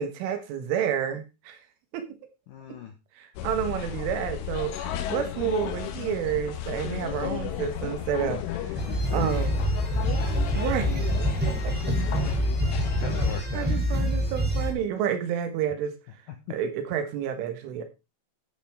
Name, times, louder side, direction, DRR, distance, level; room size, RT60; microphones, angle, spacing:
voice 1, 0.0-1.6 1.9-2.1 3.2-8.8 9.1-9.7 10.5-11.0 11.5-11.7 13.5-15.9 16.5-17.8, right 8 dB, 85° right, 3.9 m, -30 dB
voice 2, 2.5-2.9 8.3-8.4 8.9-9.4 10.0-10.4 12.4-12.5 13.0-13.7, left 8 dB, 65° left, 2.2 m, -39 dB
sound 1, 3.4-13.4, left 11 dB, 85° left, 3.8 m, -33 dB
sound 2, 8.8-14.7, equal, 5° right, 1.9 m, -26 dB
12.5 x 9.6 x 3.5 m
omnidirectional pair, 5.5 m